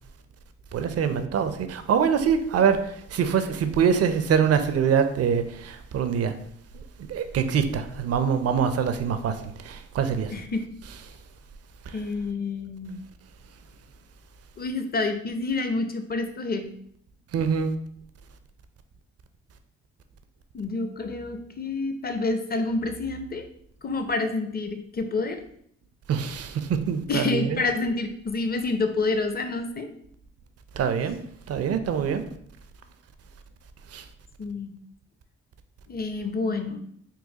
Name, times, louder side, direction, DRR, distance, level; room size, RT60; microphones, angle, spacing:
voice 1, 0.7-6.3 7.1-10.4 11.9-12.0 17.3-17.7 26.1-27.6 30.8-31.2 31.5-32.3 33.9-34.0, right 7 dB, 50° right, 0.5 m, -24 dB
voice 2, 10.3-10.6 11.9-13.0 14.6-16.7 20.5-23.4 23.8-25.4 27.1-29.9 34.4-34.7 35.9-36.8, left 3 dB, 30° left, 0.5 m, -28 dB
4.0 x 2.2 x 2.7 m
supercardioid pair, 45°, 32 cm